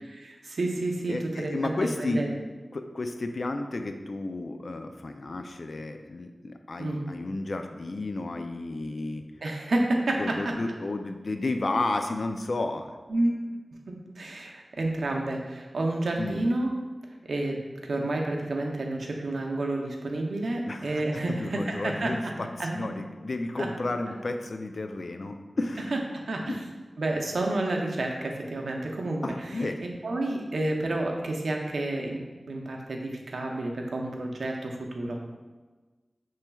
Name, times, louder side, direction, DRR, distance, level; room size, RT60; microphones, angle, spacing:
voice 1, 0.1-2.3 6.8-7.1 9.4-10.5 13.1-13.3 13.9-16.7 17.2-22.3 22.6-22.9 23.6-23.7 25.9-26.5 27.0-29.7 30.0-32.2 32.5-35.2, right 2 dB, 85° right, 1 dB, 0.5 m, -30 dB
voice 2, 1.1-2.3 2.7-9.2 10.2-12.9 16.2-16.5 20.7-25.9 26.5-26.6 29.2-29.8, left 2 dB, 65° left, 6 dB, 0.3 m, -32 dB
6.7 x 3.1 x 2.3 m, 1.3 s
wide cardioid pair, 60°, 0 cm